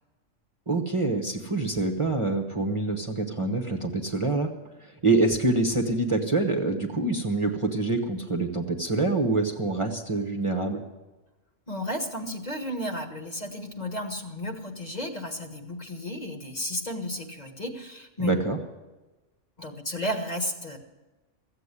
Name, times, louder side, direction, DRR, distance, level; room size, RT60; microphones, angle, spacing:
voice 1, 0.7-4.5 4.8-10.8 18.2-18.6, right 2 dB, 25° right, 3 dB, 1.0 m, -26 dB
voice 2, 11.7-18.4 19.6-20.8, left 1 dB, 35° left, 4 dB, 1.4 m, -33 dB
14.5 x 8.1 x 9.7 m, 1.1 s
omnidirectional pair, 1.3 m